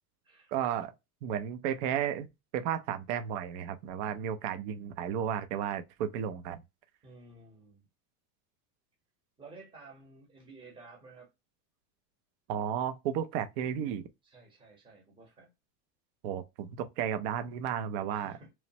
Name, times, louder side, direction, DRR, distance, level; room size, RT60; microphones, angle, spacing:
voice 1, 0.5-0.9 1.2-2.3 2.5-6.6 12.5-14.0 16.2-18.3, right 9 dB, 50° right, 0.5 m, -33 dB
voice 2, 7.0-7.9 9.4-11.3 14.2-15.5 18.1-18.5, right 3 dB, 10° right, 0.8 m, -53 dB
3.1 x 2.0 x 2.7 m
supercardioid pair, 160°, 46 cm